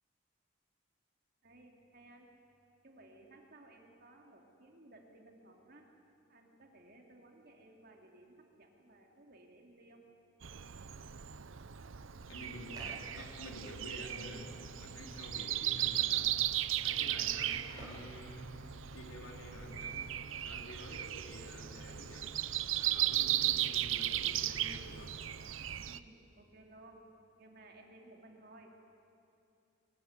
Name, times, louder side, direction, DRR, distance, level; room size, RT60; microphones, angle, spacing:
voice 1, 1.4-2.3 2.8-5.9 6.3-10.0 25.7-27.0 27.4-28.7, right 2 dB, 45° right, 1 dB, 3.0 m, -58 dB
Breathing, 10.4-26.0, right 12 dB, 70° right, 0.7 m, -36 dB
voice 2, 12.3-16.4 16.8-22.4 22.7-25.2, left 1 dB, 90° left, 0 dB, 4.4 m, -49 dB
sound 1, 12.3-19.2, right 2 dB, 20° right, 7.1 m, -56 dB
22.5 x 20.5 x 9.7 m, 2.6 s
head